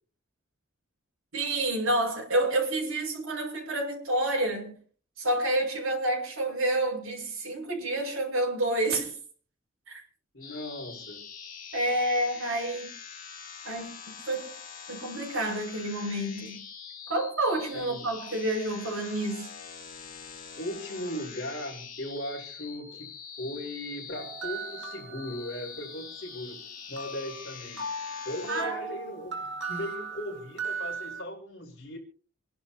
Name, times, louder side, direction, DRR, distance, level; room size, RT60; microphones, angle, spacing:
voice 1, 1.3-4.8 5.2-9.2 9.9-10.0 11.7-12.9 13.6-14.0 14.3-14.5 14.9-16.6 17.1-19.6 28.5-28.9, right 1 dB, 75° right, 6.5 m, -29 dB
voice 2, 10.3-11.2 17.7-18.0 20.5-23.1 23.4-26.6 26.9-27.9 28.3-32.0, left 1 dB, 55° left, 5.6 m, -38 dB
sound 1, 10.4-28.6, left 7 dB, 40° left, 3.3 m, -44 dB
sound 2, 24.1-26.0 27.0-31.2, right 3 dB, 60° right, 2.6 m, -38 dB
29.0 x 11.5 x 2.9 m
head